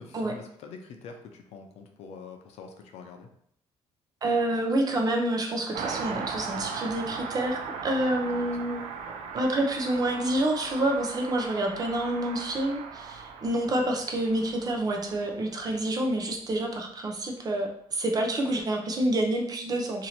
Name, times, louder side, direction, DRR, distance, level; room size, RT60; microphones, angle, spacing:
voice 1, 0.0-3.3 8.2-8.7, left 5 dB, 75° left, 4 dB, 0.6 m, -45 dB
voice 2, 4.2-8.9 9.3-20.1, right 1 dB, 35° right, 2 dB, 0.6 m, -28 dB
Car passing by, 5.7-15.7 16.0-16.1, right 5 dB, 85° right, 0.5 m, -38 dB
2.9 x 2.6 x 4.2 m, 0.70 s
cardioid pair, 135°, 11 cm